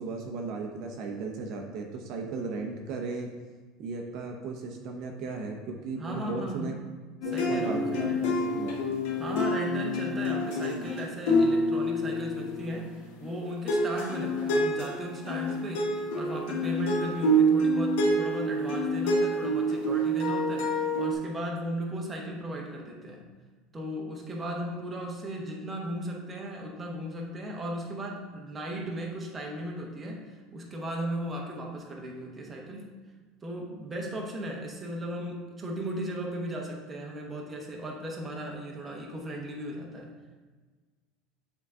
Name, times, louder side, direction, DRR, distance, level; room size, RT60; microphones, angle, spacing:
voice 1, 0.0-3.3 3.8-6.8 7.2-9.0, right 4 dB, 55° right, 2 dB, 0.7 m, -36 dB
voice 2, 6.0-6.7 7.3-8.3 9.2-23.3 23.7-30.2 30.5-32.9 33.4-40.1, right 1 dB, 20° right, -1 dB, 0.9 m, -36 dB
sound 1, 7.2-13.3 13.7-21.1, equal, 80° left, 1.0 m, -27 dB
7.1 x 3.9 x 3.6 m, 1.4 s
supercardioid pair, 140°, 0 cm